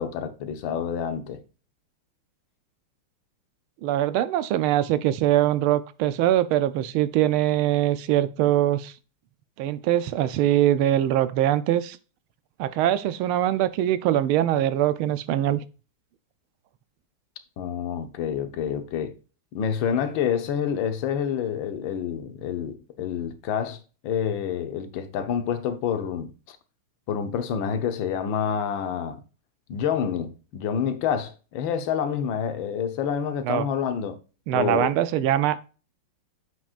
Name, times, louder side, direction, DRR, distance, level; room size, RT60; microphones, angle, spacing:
voice 1, 0.0-1.4 17.6-19.2 19.5-26.6 27.1-29.2 29.7-34.2 34.5-34.9, left 8 dB, 70° left, 1.6 m, -28 dB
voice 2, 3.8-8.9 9.6-12.0 12.6-15.6 33.4-33.7 34.5-35.7, right 12 dB, 85° right, 1.5 m, -22 dB
8.2 x 6.1 x 2.4 m
omnidirectional pair, 2.3 m